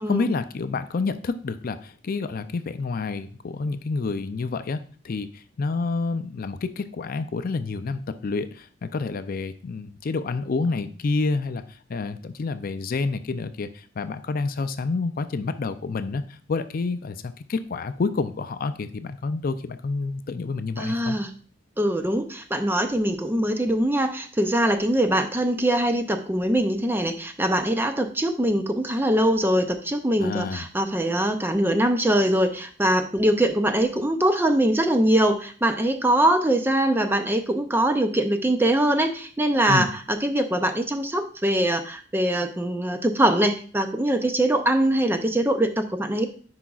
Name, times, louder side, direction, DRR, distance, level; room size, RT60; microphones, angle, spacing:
voice 1, 0.0-21.2 30.2-30.7 39.7-39.9, left 4 dB, 50° left, 11 dB, 0.4 m, -28 dB
voice 2, 20.8-21.3 21.8-39.9 40.2-46.3, right 1 dB, 10° right, 7 dB, 0.5 m, -22 dB
9.9 x 4.8 x 2.4 m, 0.43 s
head